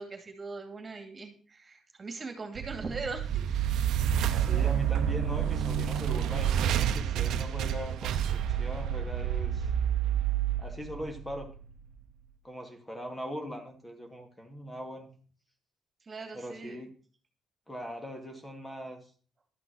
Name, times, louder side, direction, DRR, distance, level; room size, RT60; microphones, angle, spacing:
voice 1, 0.0-3.8 16.0-16.8, right 3 dB, 35° right, 5 dB, 2.5 m, -40 dB
sound 1, 2.6-11.7, right 9 dB, 80° right, 0.8 m, -29 dB
voice 2, 4.3-9.7 10.6-11.5 12.4-15.1 16.3-16.9 17.7-19.1, equal, 15° left, 4 dB, 2.3 m, -41 dB
12.5 x 6.0 x 6.4 m, 0.42 s
cardioid pair, 90°, 0 cm